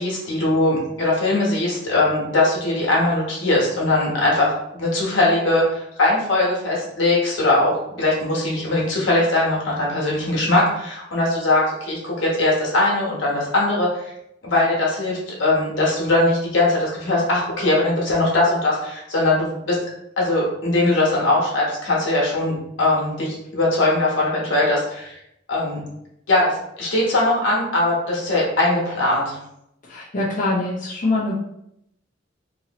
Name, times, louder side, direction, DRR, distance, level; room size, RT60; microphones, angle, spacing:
voice 1, 0.0-14.1 14.4-19.8 20.2-25.2 25.5-25.8 26.3-29.4, left 2 dB, 80° left, -4 dB, 1.2 m, -20 dB
voice 2, 29.8-31.4, left 2 dB, 45° left, -6 dB, 0.7 m, -24 dB
3.0 x 2.6 x 2.9 m, 0.79 s
head